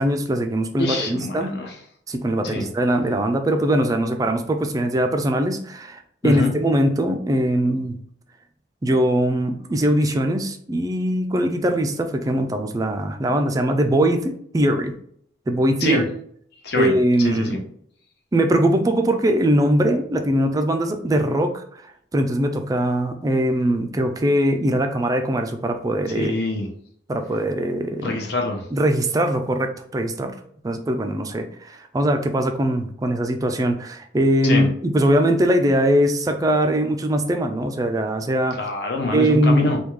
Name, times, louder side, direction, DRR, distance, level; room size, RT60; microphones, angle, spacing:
voice 1, 0.0-1.5 2.1-8.0 8.8-14.9 15.5-16.0 16.8-17.6 18.3-26.3 27.1-28.2 28.7-30.3 30.6-38.6 39.1-39.7, right 1 dB, 20° right, 6 dB, 0.3 m, -21 dB
voice 2, 0.8-1.7 2.4-2.7 6.2-6.5 15.8-16.0 16.6-16.9 17.2-17.6 26.1-26.7 28.0-28.6 34.4-34.7 38.6-39.8, left 2 dB, 60° left, 1 dB, 0.8 m, -24 dB
3.4 x 2.3 x 3.1 m, 0.64 s
head